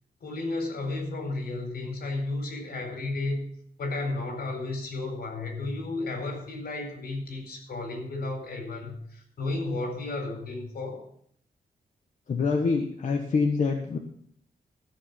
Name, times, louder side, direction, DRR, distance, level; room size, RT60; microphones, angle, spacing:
voice 1, 0.2-3.5 3.8-11.1, left 2 dB, 85° left, 2 dB, 4.5 m, -33 dB
voice 2, 12.3-14.0, left 4 dB, 50° left, 2 dB, 1.2 m, -25 dB
14.0 x 6.7 x 7.2 m, 0.65 s
wide cardioid pair, 170°, 16 cm